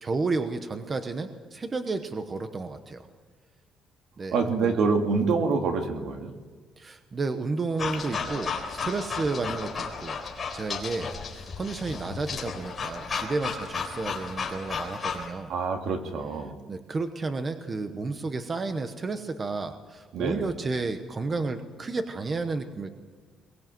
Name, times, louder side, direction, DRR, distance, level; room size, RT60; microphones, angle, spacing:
voice 1, 0.0-3.1 4.2-4.8 6.8-10.2 10.5-15.5 16.7-22.9, right 3 dB, 25° right, 7 dB, 1.0 m, -32 dB
voice 2, 4.3-6.3 15.5-16.6 20.1-20.5, right 4 dB, 65° right, 4 dB, 2.5 m, -26 dB
sound 1, 7.8-15.3, left 5 dB, 25° left, 4.1 m, -34 dB
22.5 x 20.0 x 7.7 m, 1.5 s
cardioid pair, 175°, 0 cm